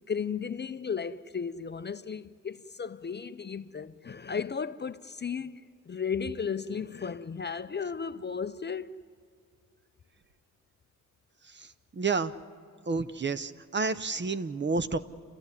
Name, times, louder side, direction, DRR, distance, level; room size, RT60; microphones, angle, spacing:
voice 1, 0.1-5.6 5.9-8.9, left 6 dB, 35° left, 0.5 m, -34 dB
voice 2, 11.4-12.3 12.9-15.0, right 4 dB, 35° right, 0.7 m, -30 dB
30.0 x 14.0 x 9.7 m
wide cardioid pair, 145°, 33 cm